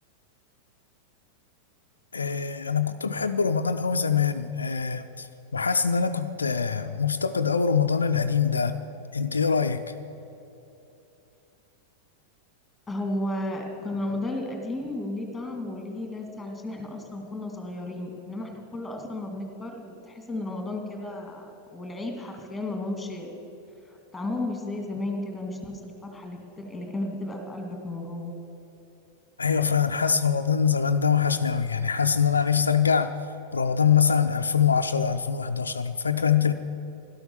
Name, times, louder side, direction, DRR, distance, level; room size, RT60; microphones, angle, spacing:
voice 1, 2.1-8.8 9.1-9.8 29.4-33.1 33.5-36.5, left 6 dB, 75° left, 7 dB, 0.4 m, -24 dB
voice 2, 12.9-23.3 23.9-28.3, left 1 dB, 5° left, 3 dB, 2.3 m, -33 dB
12.5 x 12.0 x 6.8 m, 2.9 s
figure-of-eight pair, 90°, 0 cm